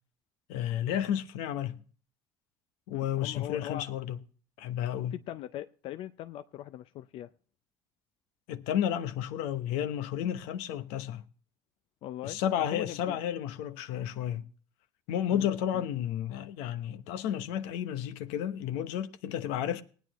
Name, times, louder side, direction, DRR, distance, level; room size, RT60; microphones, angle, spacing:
voice 1, 0.5-1.8 2.9-4.2 4.6-5.1 8.5-11.2 12.2-14.4 15.1-19.8, left 10 dB, 85° left, 1.0 m, -32 dB
voice 2, 2.9-3.9 5.1-7.3 12.0-12.4 12.7-13.2 15.3-15.5 15.7-15.8, left 12 dB, 60° left, 0.5 m, -40 dB
19.5 x 9.3 x 3.0 m
supercardioid pair, 100°, 10 cm